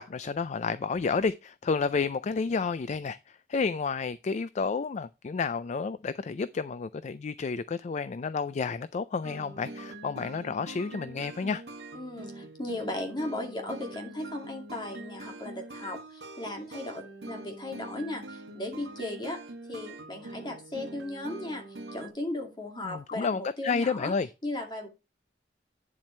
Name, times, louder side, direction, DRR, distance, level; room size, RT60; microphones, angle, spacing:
voice 1, 0.0-11.6 22.8-24.3, left 5 dB, 40° left, 0.4 m, -31 dB
sound 1, 9.2-22.1, right 2 dB, 75° right, 1.5 m, -44 dB
voice 2, 11.9-19.4 19.7-21.6 21.9-24.1 24.4-24.9, left 1 dB, 25° left, 2.3 m, -36 dB
9.6 x 7.3 x 3.2 m
head